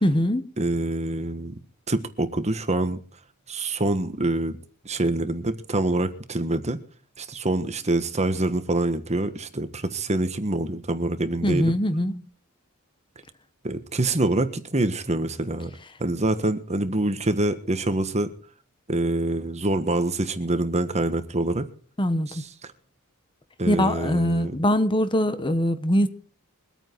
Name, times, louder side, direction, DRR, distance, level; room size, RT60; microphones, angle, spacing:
voice 1, 0.0-0.4 11.4-12.2 22.0-22.3 23.7-26.1, equal, 25° left, 1.1 m, -22 dB
voice 2, 0.6-1.5 1.9-3.0 3.5-4.6 4.8-6.8 7.2-11.7 13.6-15.7 16.0-18.3 18.9-21.7 22.3-22.5 23.6-24.5, right 2 dB, 30° right, 1.5 m, -25 dB
23.0 x 9.0 x 4.6 m
head